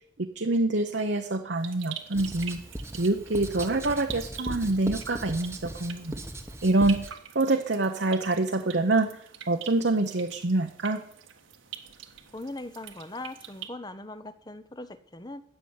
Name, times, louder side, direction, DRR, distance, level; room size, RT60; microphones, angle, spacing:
voice 1, 0.2-2.6 2.9-6.2 6.6-9.2 9.5-11.0, right 2 dB, 60° right, 5 dB, 0.9 m, -26 dB
sound 1, 1.6-13.7, right 9 dB, 75° right, 1.6 m, -45 dB
Writing, 2.1-7.1, right 1 dB, 15° right, 1.1 m, -39 dB
voice 2, 12.3-15.4, left 2 dB, 20° left, 13 dB, 0.8 m, -40 dB
16.5 x 7.0 x 9.6 m, 0.69 s
head